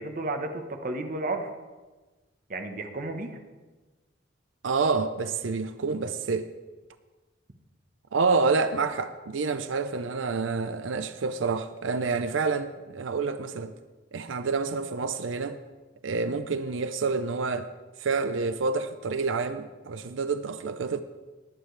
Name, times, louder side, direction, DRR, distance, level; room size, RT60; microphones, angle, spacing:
voice 1, 0.0-1.5 2.5-3.4, right 2 dB, 45° right, 5 dB, 1.1 m, -32 dB
voice 2, 4.6-6.5 8.1-13.7 14.1-15.6 16.0-17.7 18.0-21.0, right 4 dB, 85° right, 11 dB, 0.5 m, -28 dB
19.5 x 8.9 x 3.3 m, 1.2 s
head